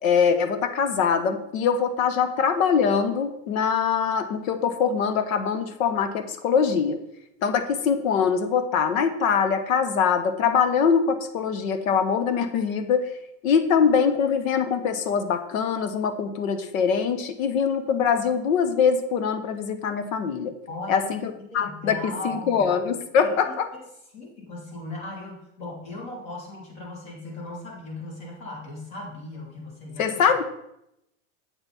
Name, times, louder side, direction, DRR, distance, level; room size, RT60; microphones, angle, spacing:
voice 1, 0.0-7.0 7.4-13.1 13.4-20.5 20.9-23.7 30.0-30.4, left 6 dB, 85° left, 9 dB, 1.1 m, -23 dB
voice 2, 20.7-21.1 21.3-22.7 23.2-23.5 24.1-30.2, left 2 dB, 40° left, -2 dB, 3.4 m, -38 dB
8.0 x 6.9 x 4.2 m, 0.80 s
supercardioid pair, 140°, 40 cm